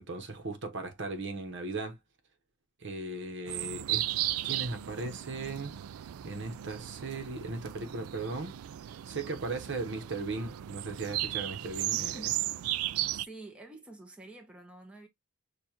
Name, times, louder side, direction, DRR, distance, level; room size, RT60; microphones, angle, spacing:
voice 1, 0.0-2.0 2.8-4.0 4.4-5.7 6.2-8.5 9.1-12.1, right 3 dB, 60° right, 1.0 m, -37 dB
sound 1, 3.5-13.3, right 14 dB, 80° right, 0.3 m, -35 dB
voice 2, 13.1-15.1, right 2 dB, 5° right, 0.9 m, -48 dB
6.8 x 2.5 x 2.9 m
head